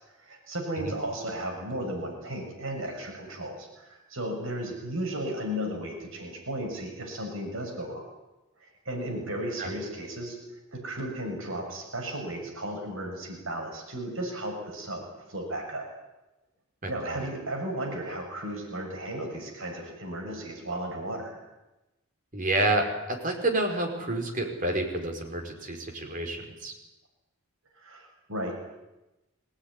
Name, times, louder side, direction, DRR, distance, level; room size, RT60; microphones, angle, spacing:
voice 1, 0.2-8.1 8.8-10.4 10.7-15.9 16.9-21.4 27.7-28.6, right 1 dB, 70° right, 2 dB, 6.8 m, -34 dB
voice 2, 22.3-26.7, right 1 dB, 40° right, 2 dB, 5.2 m, -29 dB
22.5 x 18.5 x 10.0 m, 1.0 s
head